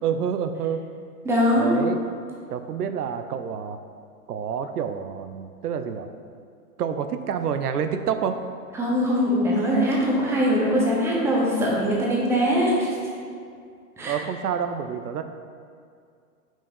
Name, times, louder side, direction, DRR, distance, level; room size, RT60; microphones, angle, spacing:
voice 1, 0.0-0.8 1.6-2.0 2.5-3.8 4.3-6.1 6.8-8.4 14.1-15.2, right 7 dB, 85° right, 8 dB, 0.7 m, -28 dB
voice 2, 1.2-1.8 8.7-12.9 14.0-14.1, equal, 5° right, -4 dB, 0.9 m, -22 dB
6.0 x 4.6 x 5.4 m, 2.3 s
hypercardioid pair, 145°, 45 cm